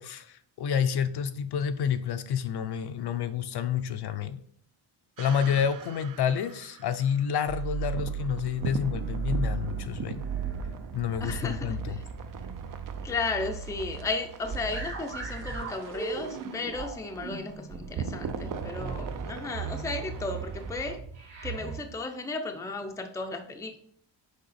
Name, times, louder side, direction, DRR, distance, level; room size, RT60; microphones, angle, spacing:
voice 1, 0.0-4.4 5.2-10.2 10.9-12.0, left 8 dB, 55° left, 9 dB, 0.6 m, -29 dB
sound 1, 5.2-21.0, right 7 dB, 45° right, 0.6 m, -41 dB
sound 2, 7.5-21.8, right 5 dB, 75° right, 2.2 m, -36 dB
voice 2, 11.2-11.8 13.0-21.0 21.4-23.8, left 3 dB, 5° left, 4 dB, 0.5 m, -34 dB
6.6 x 4.7 x 4.1 m, 0.64 s
wide cardioid pair, 160°, 46 cm